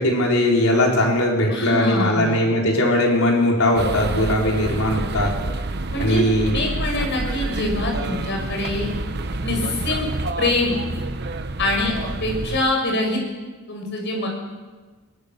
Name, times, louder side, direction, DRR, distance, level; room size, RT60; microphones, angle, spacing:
voice 1, 0.0-5.3 6.0-6.5, left 1 dB, 70° left, -1 dB, 4.6 m, -19 dB
voice 2, 1.5-2.5 5.9-6.3 6.5-8.9 9.4-10.0 10.4-10.7 11.6-11.9 12.2-13.2 13.7-14.3, left 2 dB, 50° left, 1 dB, 6.5 m, -24 dB
sound 1, 3.8-12.6, right 2 dB, 50° right, 1.0 m, -28 dB
22.5 x 21.0 x 7.0 m, 1.3 s
head